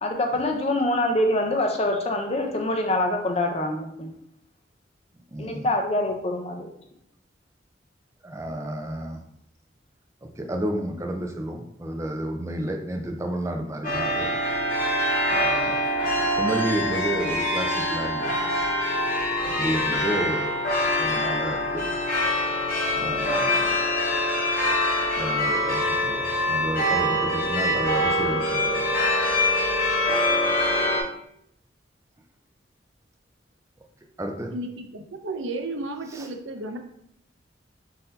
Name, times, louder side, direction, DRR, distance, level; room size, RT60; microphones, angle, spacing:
voice 1, 0.0-4.1 5.4-6.7, left 1 dB, 30° left, 3 dB, 0.5 m, -25 dB
voice 2, 5.3-5.7 8.2-9.2 10.2-14.3 15.3-15.8 16.3-18.7 19.4-20.5 21.0-21.9 22.9-23.8 25.2-28.9 30.4-30.7 34.2-34.5 36.1-36.3, right 1 dB, 15° right, 3 dB, 0.4 m, -31 dB
sound 1, 13.8-31.0, left 1 dB, 50° left, 1.0 m, -24 dB
voice 3, 34.5-36.8, right 2 dB, 80° right, 5 dB, 0.6 m, -33 dB
4.0 x 2.7 x 3.9 m, 0.73 s
head